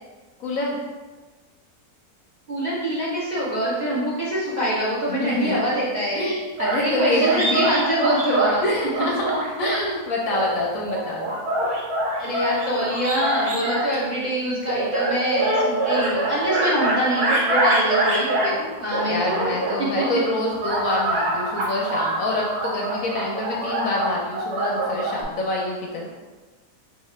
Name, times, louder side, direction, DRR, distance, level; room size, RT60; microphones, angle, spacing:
voice 1, 0.4-0.8 5.1-5.6 6.1-7.6 8.6-11.4 19.1-26.1, left 1 dB, 65° left, -2 dB, 0.9 m, -26 dB
voice 2, 2.5-6.3 6.8-8.6 12.2-20.0, equal, 35° right, -9 dB, 0.7 m, -25 dB
sound 1, 6.6-8.5 8.9-9.8 10.3-13.9 14.7-18.6 18.9-20.1 20.5-25.2, right 2 dB, 75° right, 1.4 m, -24 dB
3.1 x 2.8 x 4.2 m, 1.3 s
omnidirectional pair, 1.7 m